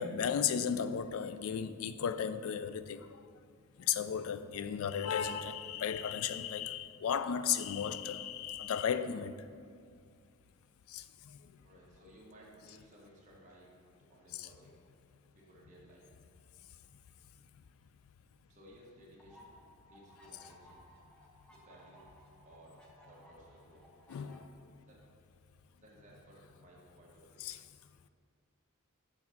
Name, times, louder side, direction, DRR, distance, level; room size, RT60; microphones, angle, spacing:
voice 1, 0.0-3.1 3.8-9.4 10.9-11.0 14.3-14.5 24.1-24.4 27.4-27.6, left 8 dB, 75° left, 0.3 m, -34 dB
voice 2, 11.6-13.8 14.1-14.8 15.3-16.1 18.5-19.5 19.9-20.8 21.5-22.1 22.4-22.8 23.1-23.8 24.8-25.0 25.7-27.4, right 1 dB, 35° right, 1.3 m, -59 dB
sound 1, 19.2-24.4, equal, 5° left, 0.8 m, -60 dB
6.5 x 3.6 x 5.8 m
head